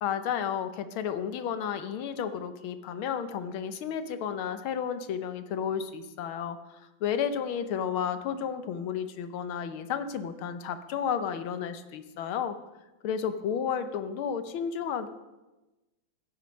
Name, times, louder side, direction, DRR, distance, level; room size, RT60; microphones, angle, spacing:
voice 1, 0.0-12.6 13.0-15.1, left 8 dB, 85° left, 10 dB, 1.7 m, -32 dB
15.5 x 7.9 x 5.3 m, 1.1 s
omnidirectional pair, 2.2 m